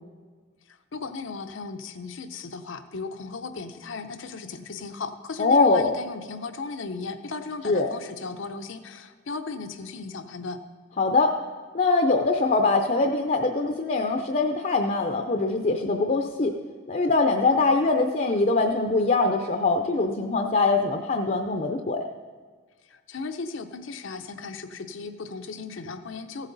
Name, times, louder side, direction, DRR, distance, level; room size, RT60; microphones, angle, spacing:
voice 1, 0.7-10.6 22.9-26.5, left 4 dB, 80° left, 8 dB, 0.7 m, -36 dB
voice 2, 5.4-6.0 7.6-7.9 11.0-11.3 11.7-16.5 16.9-22.1, left 3 dB, 40° left, 4 dB, 0.6 m, -23 dB
15.0 x 8.2 x 4.0 m, 1.5 s
head